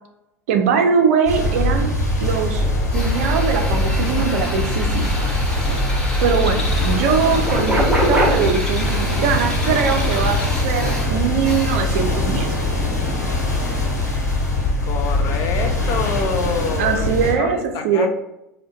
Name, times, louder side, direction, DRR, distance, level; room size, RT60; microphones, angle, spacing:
voice 1, 0.5-1.9 2.2-5.1 6.2-12.6 16.8-18.1, right 6 dB, 60° right, 6 dB, 0.6 m, -21 dB
sound 1, 1.3-17.4, left 1 dB, 90° left, 1.1 m, -22 dB
sound 2, 2.5-6.8 7.1-8.3 10.0-10.7 11.0-11.2, right 1 dB, 10° right, 0.9 m, -26 dB
Drill, 2.9-12.2, left 1 dB, 10° left, 1.0 m, -31 dB
voice 2, 14.8-18.1, left 5 dB, 45° left, 4 dB, 0.6 m, -26 dB
4.9 x 2.2 x 3.7 m, 0.86 s
figure-of-eight pair, 75°, 9 cm